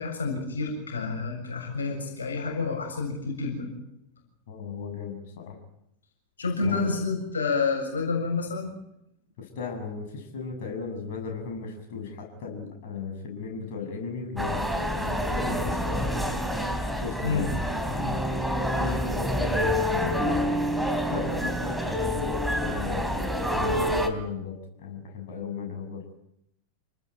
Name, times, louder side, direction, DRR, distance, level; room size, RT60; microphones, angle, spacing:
voice 1, 0.0-3.7 6.4-8.7 17.2-17.5, left 4 dB, 70° left, 2 dB, 7.2 m, -29 dB
voice 2, 4.5-5.6 6.6-6.8 9.4-16.4 17.0-17.5 17.9-20.5 20.9-23.3 23.5-26.0, left 5 dB, 50° left, 2 dB, 7.6 m, -36 dB
sound 1, 14.4-24.1, equal, ahead, 3.3 m, -27 dB
28.0 x 19.5 x 9.1 m, 0.80 s
figure-of-eight pair, 90°, 0 cm